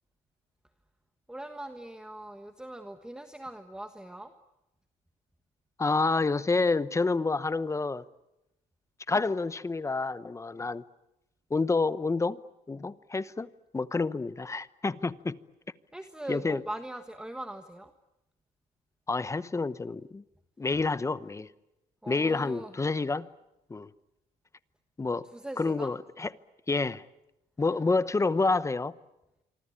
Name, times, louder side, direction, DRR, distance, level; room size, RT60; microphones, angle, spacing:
voice 1, 1.3-4.3 15.9-17.9 22.0-22.7 25.2-25.9 27.6-27.8, right 1 dB, 5° right, 1.4 m, -41 dB
voice 2, 5.8-8.0 9.1-10.8 11.5-12.4 12.7-13.5 13.7-15.4 16.3-16.6 19.1-20.2 20.6-21.5 22.1-23.3 23.7-23.9 25.0-25.3 25.6-26.3 26.7-27.0 27.6-28.9, left 3 dB, 15° left, 0.9 m, -28 dB
26.5 x 25.0 x 8.6 m
cardioid pair, 110°, 17 cm